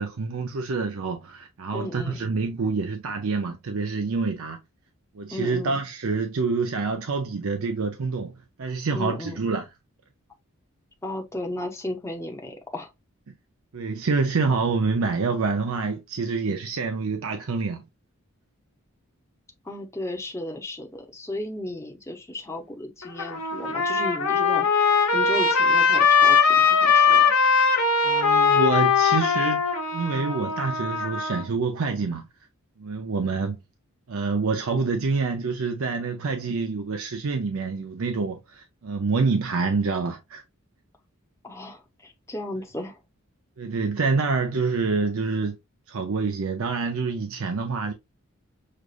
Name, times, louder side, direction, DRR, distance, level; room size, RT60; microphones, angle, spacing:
voice 1, 0.0-4.6 5.1-8.3 8.6-9.7 13.7-17.8 28.0-29.6 29.9-32.2 32.8-33.6 34.1-40.4 43.6-45.6 45.9-47.9, right 4 dB, 65° right, 0.5 m, -27 dB
voice 2, 1.7-2.3 5.3-5.8 8.9-9.5 11.0-12.9 19.6-24.7 25.1-27.3 41.4-43.0, left 1 dB, 10° left, 0.7 m, -34 dB
Trumpet, 23.0-31.4, left 5 dB, 80° left, 1.1 m, -20 dB
6.5 x 2.4 x 2.4 m
head